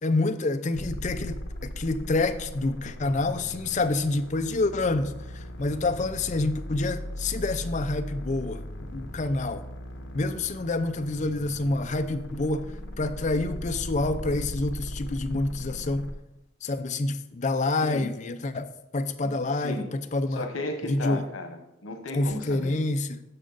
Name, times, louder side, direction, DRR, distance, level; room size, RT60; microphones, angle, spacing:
voice 1, 0.0-9.7 10.1-16.1 16.6-20.5 20.9-21.2 22.1-23.2, left 2 dB, 35° left, 0.5 m, -28 dB
sound 1, 0.7-16.1, left 1 dB, 65° left, 1.2 m, -38 dB
voice 2, 19.5-19.9 20.4-22.8, left 2 dB, 90° left, 1.1 m, -34 dB
11.0 x 6.2 x 4.0 m
head